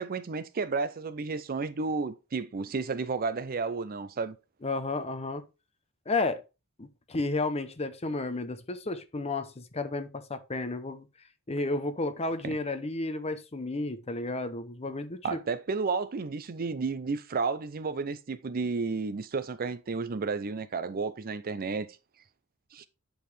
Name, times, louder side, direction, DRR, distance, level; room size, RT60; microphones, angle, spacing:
voice 1, 0.0-4.4 12.4-12.6 15.2-21.9 22.7-22.9, right 4 dB, 45° right, 0.5 m, -32 dB
voice 2, 4.6-5.4 6.1-6.4 6.8-11.1 11.5-15.4, left 2 dB, 30° left, 0.7 m, -32 dB
9.1 x 4.8 x 3.3 m
head